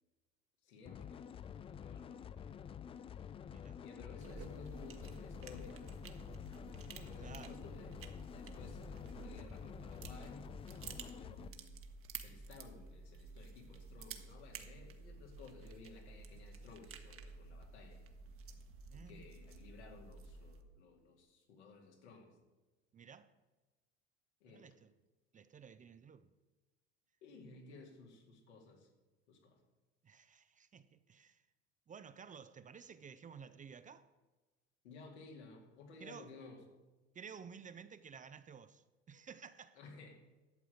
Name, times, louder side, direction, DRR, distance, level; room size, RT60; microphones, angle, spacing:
voice 1, 0.6-1.3 1.8-2.5 3.1-3.3 3.8-5.8 7.0-7.9 8.3-11.7 12.2-18.0 18.9-22.3 24.4-24.7 27.2-28.9 29.3-29.6 34.8-36.6 39.8-40.2, left 4 dB, 80° left, 2.4 m, -56 dB
sound 1, 0.8-11.5, left 8 dB, 20° left, 0.3 m, -49 dB
voice 2, 3.5-3.8 7.2-7.6 18.9-19.3 22.9-23.3 24.4-24.9 25.3-26.3 30.0-31.5 31.9-34.1 36.0-36.3 37.1-39.8, right 6 dB, 25° right, 0.6 m, -54 dB
sound 2, 4.2-20.6, right 4 dB, 40° right, 1.3 m, -52 dB
11.5 x 7.6 x 5.1 m
hypercardioid pair, 80°, 34 cm